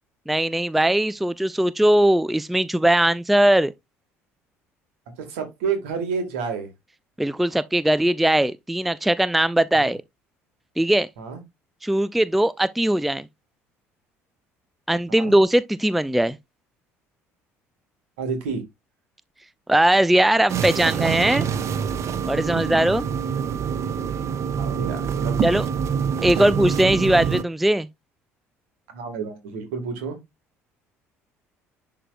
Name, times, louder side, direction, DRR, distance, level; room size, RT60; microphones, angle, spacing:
voice 1, 0.3-3.7 7.2-10.0 10.8-11.1 11.8-13.3 14.9-16.4 19.7-21.5 22.3-23.1 25.4-25.7 26.2-27.9, right 1 dB, ahead, 0.3 m, -20 dB
voice 2, 5.2-6.7 9.8-9.9 11.2-11.4 15.1-15.3 18.2-18.6 22.4-22.8 24.5-25.4 26.4-26.5 28.9-30.2, right 5 dB, 65° right, 2.0 m, -30 dB
sound 1, 20.5-27.4, right 7 dB, 40° right, 0.6 m, -26 dB
10.5 x 3.8 x 2.4 m
figure-of-eight pair, 55°, 7 cm